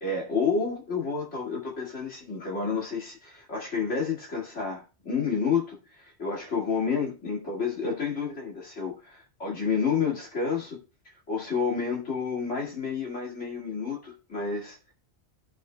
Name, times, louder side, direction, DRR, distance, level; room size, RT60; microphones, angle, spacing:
voice 1, 0.0-10.8 11.3-14.9, left 5 dB, 85° left, 2.5 m, -30 dB
18.5 x 6.6 x 2.2 m
omnidirectional pair, 1.2 m